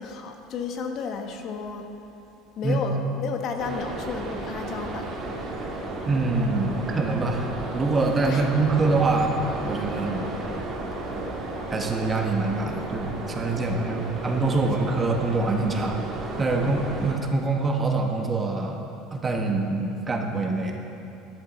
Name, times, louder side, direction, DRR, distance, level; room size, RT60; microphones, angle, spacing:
voice 1, 0.0-1.9 2.6-5.1 8.2-8.5 14.0-14.9, left 5 dB, 50° left, 5 dB, 1.0 m, -33 dB
sound 1, 3.6-17.1, right 2 dB, 40° right, 1.9 m, -33 dB
voice 2, 6.1-7.5 7.7-9.3 9.6-10.3 11.7-16.0 16.4-18.8 19.1-20.8, right 3 dB, 25° right, 2 dB, 1.3 m, -25 dB
11.5 x 11.0 x 4.2 m, 2.7 s
supercardioid pair, 110°, 0 cm